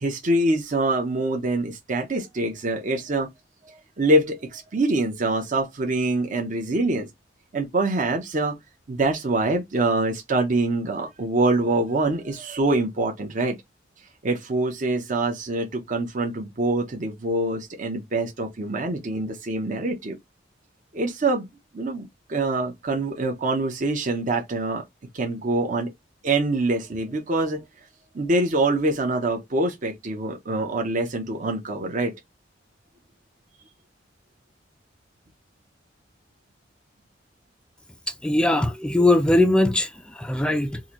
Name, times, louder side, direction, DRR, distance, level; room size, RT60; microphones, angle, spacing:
voice 1, 0.0-3.3 3.6-7.1 7.5-8.6 8.9-13.6 14.2-20.2 20.9-21.5 21.7-24.8 25.1-25.9 26.2-27.6 28.1-32.1, right 2 dB, 45° right, 0.7 m, -25 dB
voice 2, 38.2-40.8, left 1 dB, 5° left, 0.3 m, -20 dB
3.7 x 2.5 x 2.9 m
head